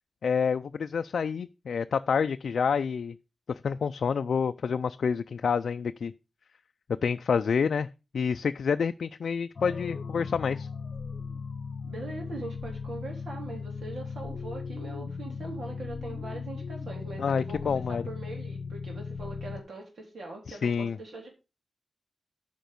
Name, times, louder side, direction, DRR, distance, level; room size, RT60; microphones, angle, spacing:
voice 1, 0.2-3.1 3.5-6.1 7.0-7.9 8.1-10.7 17.2-18.0 20.5-21.0, left 6 dB, 90° left, 0.3 m, -28 dB
sound 1, 9.6-19.6, left 5 dB, 65° left, 0.8 m, -37 dB
voice 2, 11.8-21.3, right 2 dB, 70° right, 3.5 m, -41 dB
9.1 x 5.2 x 5.2 m
wide cardioid pair, 130°, 0 cm